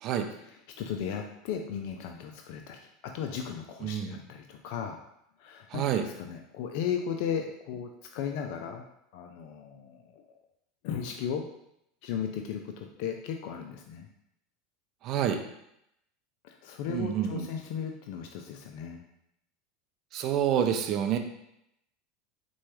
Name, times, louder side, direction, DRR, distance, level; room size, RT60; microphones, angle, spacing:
voice 1, 0.4-5.0 5.4-8.9 9.1-10.2 10.8-11.5 12.0-14.1 16.4-19.0, left 7 dB, 60° left, 3 dB, 0.3 m, -36 dB
voice 2, 3.8-4.2 5.7-6.0 15.0-15.4 16.9-17.5 20.1-21.2, right 9 dB, 45° right, 6 dB, 0.4 m, -28 dB
4.3 x 2.3 x 3.0 m, 0.79 s
figure-of-eight pair, 80°, 0 cm